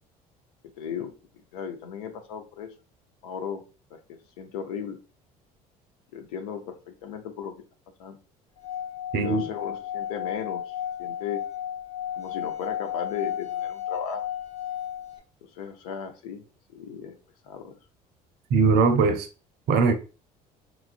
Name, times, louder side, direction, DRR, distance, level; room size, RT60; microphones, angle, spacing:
voice 1, 0.8-1.1 1.5-2.7 3.2-3.6 3.9-4.0 4.4-5.0 6.1-7.5 8.0-8.2 9.2-11.4 12.1-14.2 15.4-16.4 16.7-17.1 17.4-17.7, left 7 dB, 75° left, 0.6 m, -36 dB
Singing / Glass, 8.6-15.2, left 10 dB, 35° left, 0.6 m, -33 dB
voice 2, 9.1-9.4 18.5-19.3 19.7-19.9, right 4 dB, 55° right, 0.6 m, -20 dB
3.1 x 2.4 x 2.4 m
hypercardioid pair, 60°, 20 cm